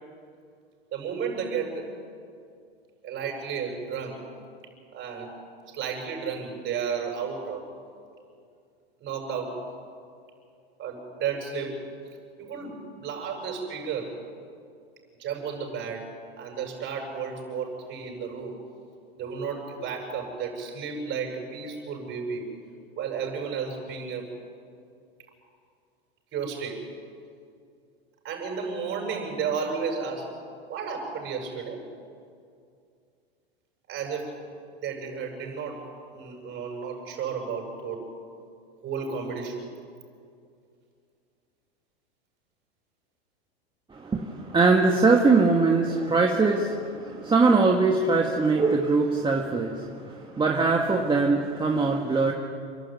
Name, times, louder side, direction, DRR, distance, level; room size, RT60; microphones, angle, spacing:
voice 1, 0.9-1.9 3.0-4.2 4.9-5.4 5.7-7.6 9.0-9.6 10.8-11.8 12.4-14.2 15.2-16.1 16.4-18.6 19.1-22.5 23.0-24.3 26.3-26.8 28.2-30.3 30.7-31.8 33.9-34.3 34.8-35.8 36.1-38.0 38.8-39.7, right 6 dB, 35° right, 1 dB, 7.9 m, -33 dB
voice 2, 43.9-52.3, right 3 dB, 15° right, 1 dB, 1.7 m, -22 dB
29.0 x 12.5 x 9.5 m, 2.4 s
hypercardioid pair, 100°, 32 cm